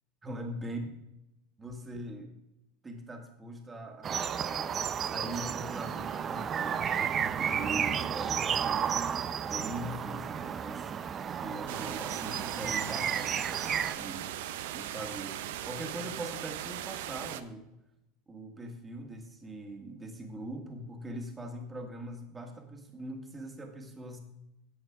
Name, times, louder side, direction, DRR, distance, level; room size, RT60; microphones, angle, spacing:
voice 1, 0.2-0.8 1.6-2.3 2.8-4.8 5.1-9.0 9.4-10.9 11.4-13.6 14.0-14.3 14.7-15.4 15.7-17.7 18.3-24.2, right 1 dB, 20° right, 3 dB, 2.0 m, -42 dB
sound 1, 4.0-13.9, right 8 dB, 35° right, 0.6 m, -32 dB
sound 2, 11.7-17.4, right 12 dB, 75° right, 0.7 m, -39 dB
11.5 x 7.8 x 3.7 m, 0.87 s
hypercardioid pair, 100°, 0 cm